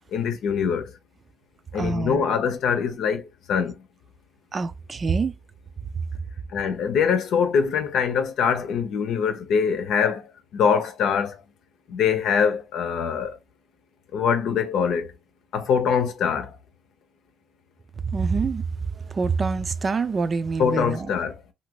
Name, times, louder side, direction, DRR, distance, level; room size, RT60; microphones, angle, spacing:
voice 1, 0.1-0.9 1.7-3.8 6.5-11.4 11.9-13.4 14.1-15.1 15.5-16.6 20.6-21.4, left 7 dB, 80° left, 0.7 m, -23 dB
voice 2, 1.8-2.2 4.5-5.3 18.1-18.6 19.1-21.1, right 4 dB, 40° right, 0.4 m, -25 dB
2.8 x 2.6 x 3.0 m
cardioid pair, 90°, 0 cm